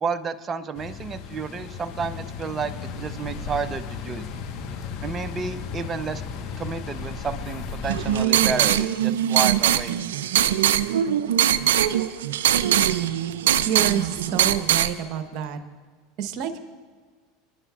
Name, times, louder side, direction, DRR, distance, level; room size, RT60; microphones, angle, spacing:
voice 1, 0.0-4.2 5.0-6.2 6.6-10.0, right 5 dB, 30° right, 10 dB, 0.8 m, -31 dB
sound 1, 0.8-8.3, left 5 dB, 55° left, 1.2 m, -35 dB
sound 2, 7.8-14.9, right 11 dB, 75° right, 0.4 m, -21 dB
voice 2, 13.6-15.6 16.2-16.6, right 9 dB, 55° right, 9 dB, 1.1 m, -28 dB
25.5 x 11.0 x 2.4 m, 1.5 s
hypercardioid pair, 85°, 0 cm